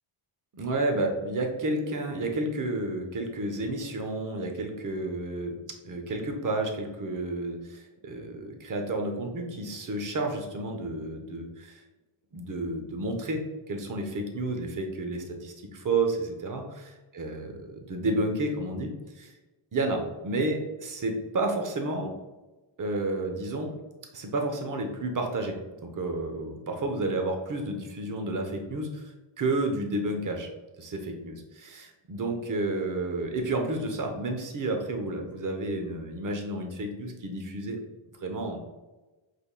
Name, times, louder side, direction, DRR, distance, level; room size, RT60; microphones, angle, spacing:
voice 1, 0.5-11.8 12.3-19.3 19.7-22.2 22.8-23.8 24.1-30.5 30.8-37.8 38.2-38.6, right 2 dB, 40° right, 3 dB, 0.8 m, -31 dB
5.1 x 4.0 x 2.2 m, 1.1 s
wide cardioid pair, 115°, 48 cm